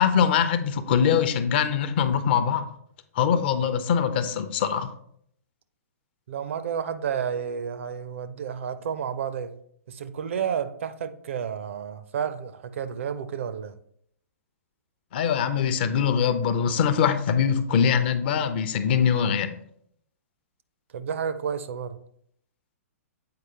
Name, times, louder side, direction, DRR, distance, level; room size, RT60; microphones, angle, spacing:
voice 1, 0.0-2.7 3.2-4.9 15.1-19.6, left 7 dB, 45° left, 0.5 m, -23 dB
voice 2, 6.3-9.5 9.9-13.8 20.9-22.0, right 7 dB, 55° right, 0.5 m, -31 dB
7.6 x 4.5 x 2.9 m
figure-of-eight pair, 115°, 8 cm